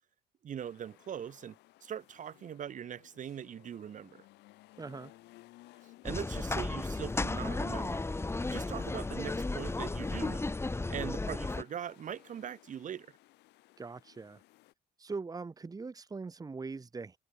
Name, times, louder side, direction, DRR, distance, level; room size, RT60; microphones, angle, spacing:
voice 1, 0.4-4.3 5.8-8.0 8.5-10.5 10.9-13.1, right 9 dB, 50° right, 3.0 m, -41 dB
sound 1, 0.6-14.7, left 19 dB, 85° left, 7.2 m, -60 dB
voice 2, 4.8-5.1 13.8-14.4 15.0-17.2, right 4 dB, 20° right, 2.2 m, -41 dB
sound 2, 6.0-11.6, left 2 dB, 15° left, 3.5 m, -34 dB
cardioid pair, 110°, 17 cm